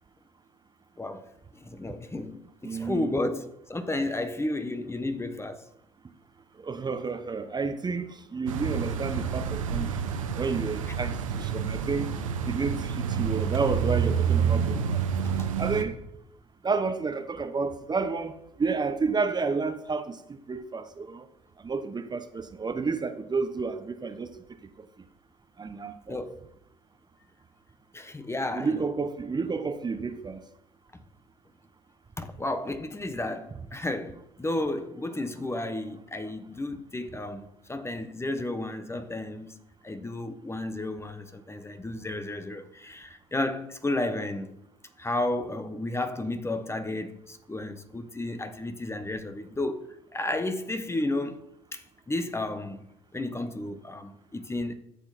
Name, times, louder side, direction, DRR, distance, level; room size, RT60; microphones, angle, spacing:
voice 1, 1.0-5.7 15.2-15.5 26.1-26.4 27.9-28.9 32.2-39.5 39.8-44.5 45.0-52.8 53.1-54.7, left 2 dB, 15° left, 1.3 m, -32 dB
voice 2, 2.6-3.2 6.6-10.0 10.4-12.1 12.4-15.0 15.6-16.0 16.6-21.3 21.6-24.3 24.8-24.9 25.6-26.2 28.5-30.4, right 4 dB, 25° right, 1.1 m, -31 dB
sound 1, 8.5-15.8, right 7 dB, 85° right, 1.1 m, -28 dB
13.0 x 8.1 x 4.2 m
hypercardioid pair, 65°, 16 cm